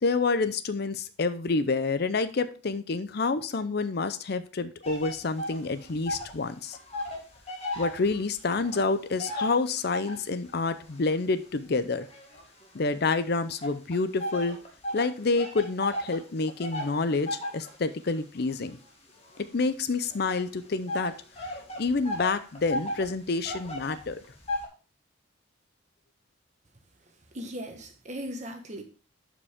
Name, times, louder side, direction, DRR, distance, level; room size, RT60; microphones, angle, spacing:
voice 1, 0.0-6.8 7.8-12.1 12.7-14.6 14.9-18.8 19.4-21.1 21.8-24.2, left 3 dB, 50° left, 12 dB, 0.6 m, -28 dB
sound 1, 4.8-6.4 6.7-10.3 10.9-13.0 13.6-24.7, left 1 dB, 30° left, 1.8 m, -36 dB
voice 2, 27.3-28.8, equal, 35° right, 5 dB, 1.3 m, -38 dB
11.5 x 5.1 x 3.6 m, 0.37 s
head